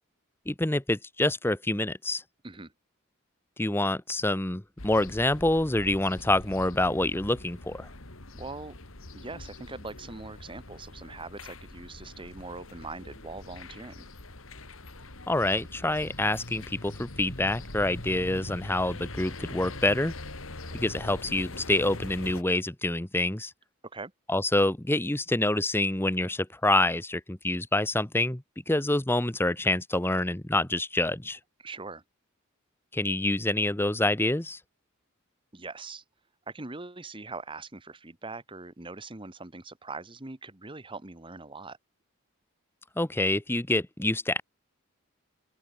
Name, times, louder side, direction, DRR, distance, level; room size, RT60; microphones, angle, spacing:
voice 1, 0.5-2.2 3.6-7.9 15.3-20.1 20.7-23.5 24.3-31.4 32.9-34.6 43.0-44.4, left 1 dB, 10° left, 1.0 m, -27 dB
sound 1, 4.8-22.4, left 2 dB, 70° left, 2.9 m, -43 dB
voice 2, 8.3-8.7 9.1-14.1 23.8-24.1 31.6-32.0 35.5-36.0 36.5-41.8, right 3 dB, 25° right, 1.3 m, -42 dB
open air
head